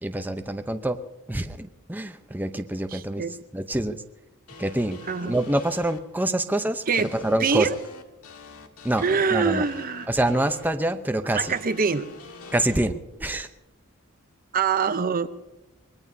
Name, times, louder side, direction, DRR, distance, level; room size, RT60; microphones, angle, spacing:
voice 1, 0.0-1.0 1.3-3.2 3.5-4.0 4.6-7.7 8.8-9.0 9.3-9.6 10.1-11.5 12.5-13.5, right 1 dB, 10° right, 7 dB, 0.7 m, -26 dB
voice 2, 2.9-3.4 5.1-5.4 6.9-7.1 7.4-7.7 9.0-10.1 11.3-12.1 14.5-15.3, right 5 dB, 40° right, 11 dB, 0.8 m, -24 dB
sound 1, 4.5-6.0 6.9-10.7 11.3-12.8, left 3 dB, 90° left, 1.8 m, -44 dB
24.5 x 20.0 x 2.8 m, 0.99 s
head